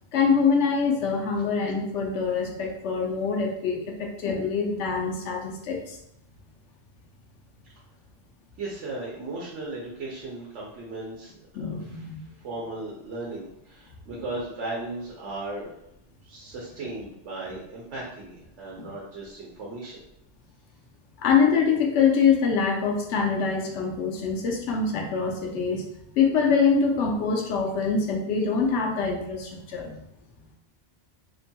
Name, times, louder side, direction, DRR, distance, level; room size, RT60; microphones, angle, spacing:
voice 1, 0.1-6.0 11.5-12.2 18.8-18.9 21.2-30.0, left 5 dB, 85° left, 1 dB, 0.9 m, -24 dB
voice 2, 8.6-11.3 11.6-12.1 12.4-15.7 16.2-20.0, right 2 dB, 85° right, -4 dB, 1.0 m, -36 dB
2.8 x 2.2 x 2.7 m, 0.77 s
omnidirectional pair, 1.2 m